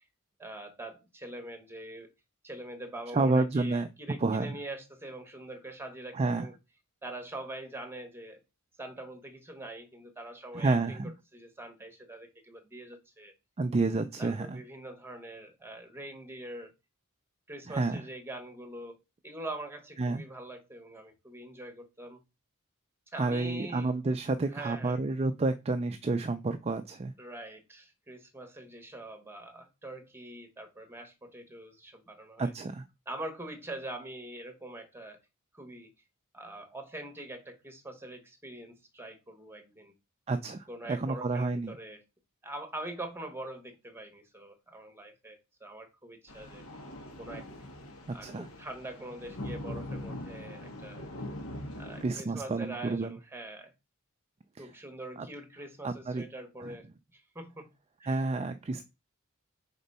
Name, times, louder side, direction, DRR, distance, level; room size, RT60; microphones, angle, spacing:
voice 1, 0.4-2.1 2.4-6.5 7.0-8.4 8.8-13.3 14.2-16.7 17.5-19.0 19.2-22.2 23.1-23.9 24.5-25.0 27.2-32.5 33.1-35.2 35.5-35.9 36.3-39.9 40.7-42.0 42.4-46.6 47.2-47.5 48.1-51.1 51.8-53.7 54.6-57.7 58.0-58.2, right 1 dB, 10° right, 1.3 m, -44 dB
voice 2, 3.1-3.9 4.2-4.6 6.1-6.5 10.5-11.1 13.6-14.6 17.7-18.0 20.0-20.2 23.2-27.1 32.4-32.8 40.3-41.8 48.1-48.5 52.0-53.1 54.6-54.7 55.2-55.3 55.8-56.2 56.6-56.7 58.0-58.8, right 3 dB, 30° right, 0.4 m, -30 dB
sound 1, 46.3-52.1, left 1 dB, 70° left, 1.3 m, -42 dB
4.4 x 4.0 x 5.4 m
head